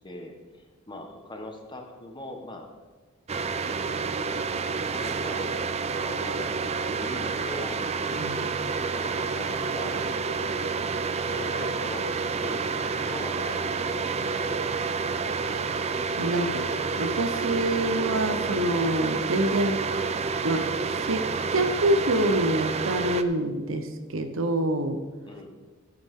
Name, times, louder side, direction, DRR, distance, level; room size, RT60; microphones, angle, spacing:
voice 1, 0.0-2.7 4.7-6.7 6.9-7.8 8.9-10.0 11.3-12.1 12.4-14.8 25.3-25.5, left 1 dB, 25° left, 3 dB, 1.3 m, -41 dB
sound 1, 3.3-23.2, right 4 dB, 30° right, 0.5 m, -29 dB
voice 2, 16.2-16.6 17.0-19.8 20.4-20.6 21.1-25.0, right 1 dB, 75° right, 8 dB, 0.9 m, -26 dB
13.5 x 8.8 x 3.8 m, 1.4 s
head